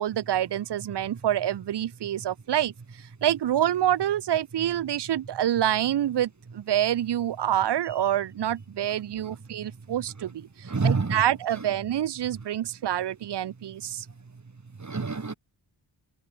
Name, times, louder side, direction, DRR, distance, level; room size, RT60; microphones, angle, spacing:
voice 1, 0.0-2.7 3.2-14.1, right 11 dB, 60° right, 0.5 m, -27 dB
voice 2, 10.6-11.2 11.6-11.7 14.1-14.4 14.8-15.3, right 4 dB, 35° right, 2.0 m, -29 dB
wide cardioid pair, 120°, 47 cm